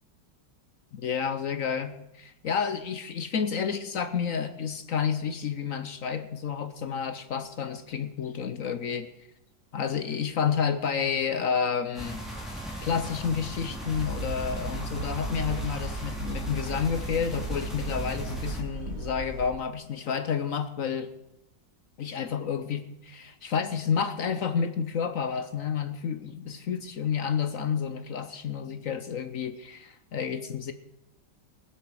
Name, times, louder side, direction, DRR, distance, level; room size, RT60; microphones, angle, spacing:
voice 1, 0.9-9.1 9.7-12.2 12.8-21.1 22.0-30.7, left 7 dB, 60° left, 10 dB, 1.0 m, -30 dB
sound 1, 11.9-18.6, right 1 dB, ahead, 3.9 m, -38 dB
sound 2, 13.9-19.5, right 3 dB, 45° right, 1.1 m, -36 dB
20.0 x 7.9 x 6.3 m, 0.89 s
omnidirectional pair, 2.0 m